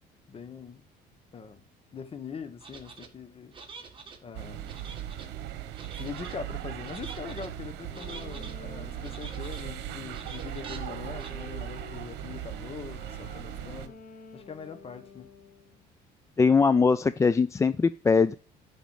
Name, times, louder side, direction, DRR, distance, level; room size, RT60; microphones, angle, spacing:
voice 1, 0.3-0.8 1.3-1.6 1.9-3.5 4.2-4.8 6.0-14.0 14.3-15.3, left 6 dB, 35° left, 1.3 m, -42 dB
sound 1, 2.6-3.1 3.5-4.2 4.6-5.3 5.7-6.4 6.8-7.5 7.9-8.5 9.0-9.7 10.1-10.8 11.2-11.3, right 5 dB, 30° right, 1.8 m, -46 dB
sound 2, 4.3-13.9, right 11 dB, 85° right, 1.0 m, -38 dB
sound 3, 7.9-15.8, left 5 dB, 70° left, 3.6 m, -50 dB
voice 2, 16.4-18.3, left 5 dB, 20° left, 0.3 m, -21 dB
11.5 x 5.2 x 4.8 m
cardioid pair, 110°, 17 cm